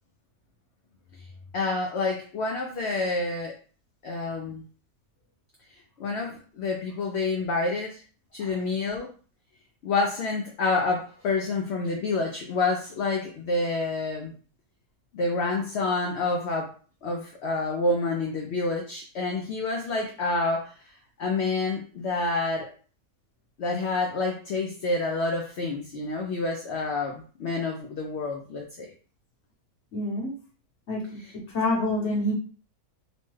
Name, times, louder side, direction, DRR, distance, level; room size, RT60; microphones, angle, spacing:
voice 1, 1.5-3.5 4.0-4.6 6.0-8.0 8.3-9.1 9.8-14.3 15.1-16.7 17.0-20.7 21.2-22.7 23.6-28.9, left 3 dB, 70° left, 1 dB, 0.6 m, -28 dB
voice 2, 29.9-30.3 30.9-32.3, left 1 dB, 55° left, -3 dB, 1.1 m, -28 dB
3.0 x 2.1 x 3.1 m, 0.40 s
omnidirectional pair, 1.6 m